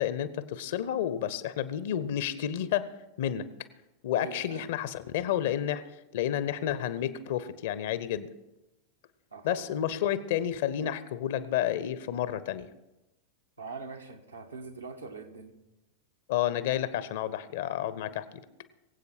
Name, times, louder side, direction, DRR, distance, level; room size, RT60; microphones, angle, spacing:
voice 1, 0.0-2.9 3.2-3.5 4.0-5.8 6.1-8.3 9.4-12.7 16.3-18.4, left 11 dB, 55° left, 15 dB, 0.8 m, -30 dB
voice 2, 4.1-4.7 9.3-9.6 13.6-15.5, right 4 dB, 80° right, 2 dB, 1.5 m, -42 dB
23.0 x 8.2 x 4.4 m, 0.98 s
figure-of-eight pair, 90°, 0 cm